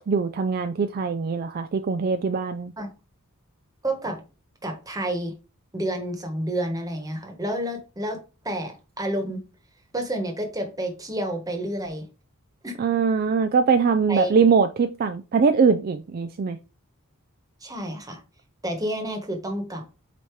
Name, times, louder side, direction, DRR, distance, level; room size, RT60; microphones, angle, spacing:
voice 1, 0.1-2.7 12.8-16.6, right 5 dB, 45° right, 0.4 m, -22 dB
voice 2, 3.8-4.2 4.6-5.3 5.7-8.2 8.4-9.4 9.9-12.1 12.6-12.8 14.1-14.3 17.6-18.2 18.6-19.8, right 1 dB, 15° right, 1.2 m, -29 dB
8.2 x 2.9 x 4.6 m
head